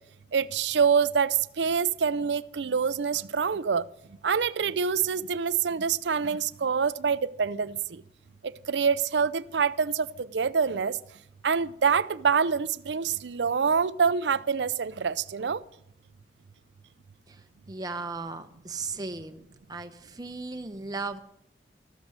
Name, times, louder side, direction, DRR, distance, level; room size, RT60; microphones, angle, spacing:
voice 1, 0.3-3.8 4.2-7.8 8.7-10.9 11.4-15.6, right 6 dB, 90° right, 0.5 m, -26 dB
voice 2, 17.7-19.4 19.7-21.2, right 3 dB, 20° right, 0.9 m, -36 dB
13.5 x 12.0 x 6.5 m
head